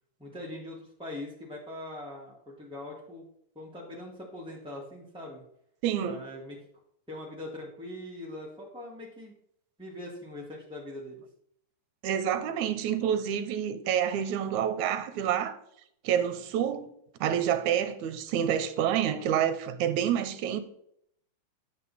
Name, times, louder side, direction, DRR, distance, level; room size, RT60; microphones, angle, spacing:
voice 1, 0.2-3.2 3.5-5.4 6.0-6.7 7.1-9.3 9.8-11.2, left 1 dB, ahead, 1.2 m, -42 dB
voice 2, 5.8-6.2 12.0-15.6 16.0-16.9 17.2-20.6, right 9 dB, 75° right, 2.2 m, -28 dB
11.5 x 8.0 x 4.2 m
omnidirectional pair, 3.6 m